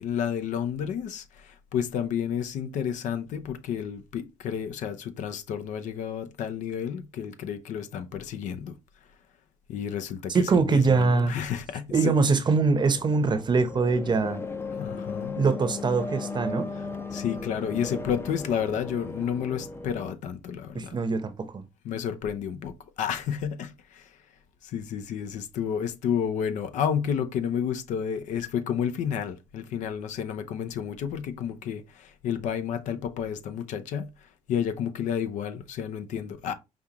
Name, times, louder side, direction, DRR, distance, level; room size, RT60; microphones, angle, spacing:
voice 1, 0.0-8.7 9.7-12.1 14.7-15.4 17.1-21.0 21.8-24.1 24.6-34.1 34.5-36.5, left 8 dB, 80° left, 0.6 m, -31 dB
voice 2, 10.3-11.3 11.9-14.4 15.4-16.6 20.7-21.6, right 4 dB, 35° right, 0.7 m, -23 dB
sound 1, 12.8-20.2, left 3 dB, 20° left, 0.5 m, -36 dB
5.1 x 2.4 x 2.9 m
cardioid pair, 80°, 13 cm